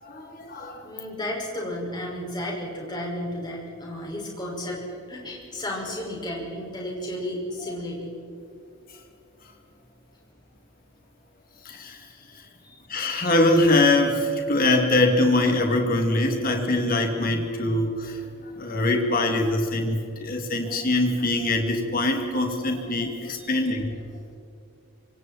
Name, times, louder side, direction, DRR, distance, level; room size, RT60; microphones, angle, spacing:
voice 1, 0.0-0.8 11.6-12.0 12.9-18.2 18.6-23.9, left 2 dB, 40° left, 2 dB, 3.0 m, -23 dB
voice 2, 0.8-8.1 12.6-12.8 23.4-23.5, left 1 dB, 20° left, -2 dB, 6.0 m, -33 dB
27.0 x 25.5 x 4.5 m, 2.5 s
head